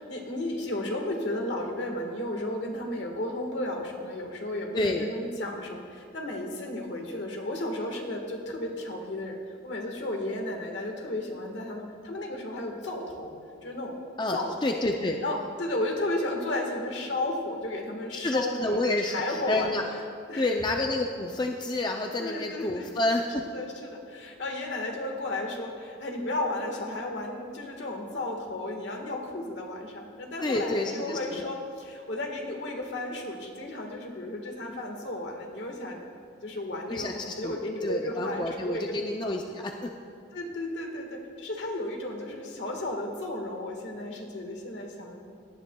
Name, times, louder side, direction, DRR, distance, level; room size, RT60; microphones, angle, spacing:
voice 1, 0.0-9.3 9.6-13.3 13.6-13.9 14.3-14.5 15.2-18.8 19.0-19.7 20.3-20.5 22.2-22.9 23.5-36.0 36.4-39.0 39.2-39.3 40.3-45.2, left 1 dB, 65° left, 1 dB, 1.5 m, -33 dB
voice 2, 4.7-5.1 14.2-15.2 18.2-19.8 20.4-23.5 30.4-31.5 36.9-39.9, left 2 dB, 20° left, 2 dB, 0.4 m, -29 dB
18.0 x 10.0 x 2.3 m, 2.3 s
head